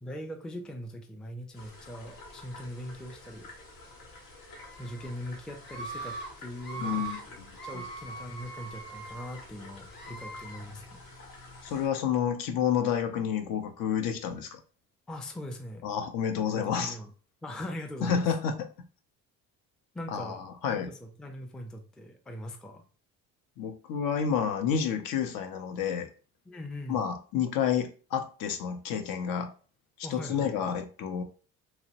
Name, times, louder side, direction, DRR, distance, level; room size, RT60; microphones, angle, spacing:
voice 1, 0.0-3.5 4.8-7.4 7.6-11.0 15.1-15.8 16.5-17.1 17.4-18.3 19.9-20.4 20.7-22.8 26.5-27.0 30.0-30.5, left 1 dB, ahead, 4 dB, 0.3 m, -41 dB
sound 1, 1.5-11.9, left 2 dB, 85° left, 1.0 m, -50 dB
Screaming, 4.5-5.1 5.6-6.3 6.6-7.2 7.5-9.4 9.9-10.6, right 4 dB, 30° left, 0.8 m, -41 dB
voice 2, 6.8-7.5 11.6-14.6 15.8-16.9 18.0-18.9 20.1-20.9 23.6-26.1 26.9-29.5 30.1-31.2, left 8 dB, 65° left, 7 dB, 0.6 m, -30 dB
2.9 x 2.1 x 2.8 m, 0.38 s
supercardioid pair, 85°, 36 cm